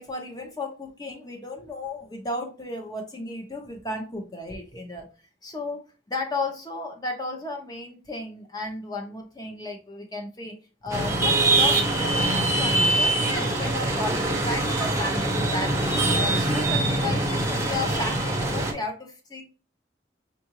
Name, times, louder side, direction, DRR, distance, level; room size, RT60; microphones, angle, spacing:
voice 1, 0.0-5.1 5.4-5.8 6.1-10.6 10.8-15.9 16.2-19.4, left 2 dB, 20° left, 2 dB, 0.8 m, -34 dB
sound 1, 10.9-18.7, right 2 dB, 15° right, 0.7 m, -23 dB
5.6 x 2.5 x 2.9 m, 0.34 s
head